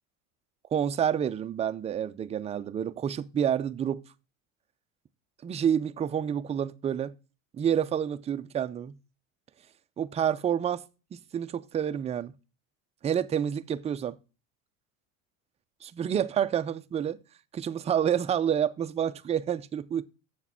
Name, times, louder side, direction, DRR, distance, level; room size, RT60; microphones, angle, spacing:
voice 1, 0.7-4.0 5.4-7.1 7.5-8.9 10.0-10.8 11.1-12.3 13.0-14.2 15.8-17.2 17.5-20.0, right 9 dB, 15° right, 0.4 m, -28 dB
7.3 x 6.8 x 5.5 m
supercardioid pair, 115°, 40 cm